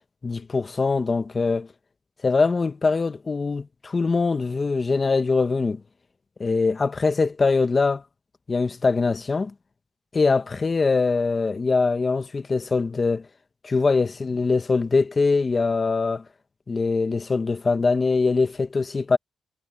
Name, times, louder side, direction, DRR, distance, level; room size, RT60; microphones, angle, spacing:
voice 1, 0.2-1.7 2.2-5.8 6.4-8.0 8.5-9.5 10.1-13.3 13.6-16.2 16.7-19.2, left 4 dB, 35° left, 1.2 m, -22 dB
cardioid pair, 105°, 0 cm